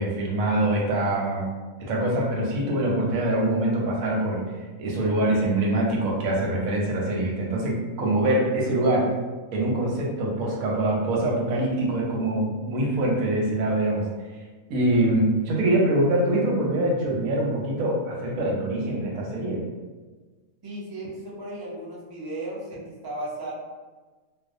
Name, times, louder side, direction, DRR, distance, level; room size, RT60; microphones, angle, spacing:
voice 1, 0.0-1.5 1.8-4.4 4.8-9.1 9.5-14.0 14.7-19.6, right 1 dB, 85° right, -2 dB, 1.1 m, -24 dB
voice 2, 20.6-23.5, right 1 dB, 35° right, -6 dB, 0.4 m, -35 dB
2.6 x 2.1 x 2.5 m, 1.3 s
omnidirectional pair, 1.4 m